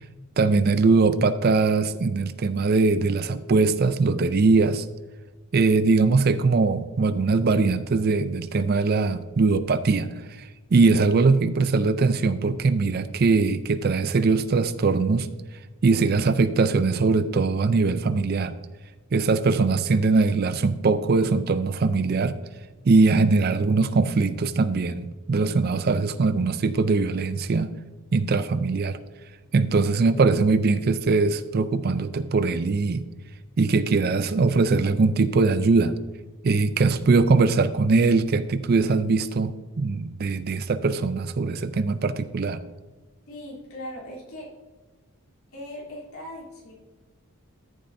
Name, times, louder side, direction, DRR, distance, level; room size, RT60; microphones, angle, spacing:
voice 1, 0.4-4.9 5.5-10.1 10.7-15.3 15.8-18.5 19.1-22.4 22.8-27.7 28.1-29.0 29.5-33.0 33.6-35.9 36.4-42.6, right 4 dB, 45° right, 13 dB, 0.4 m, -21 dB
voice 2, 43.3-44.5 45.5-46.7, left 1 dB, 75° left, -5 dB, 3.2 m, -39 dB
13.5 x 7.2 x 2.6 m, 1.2 s
head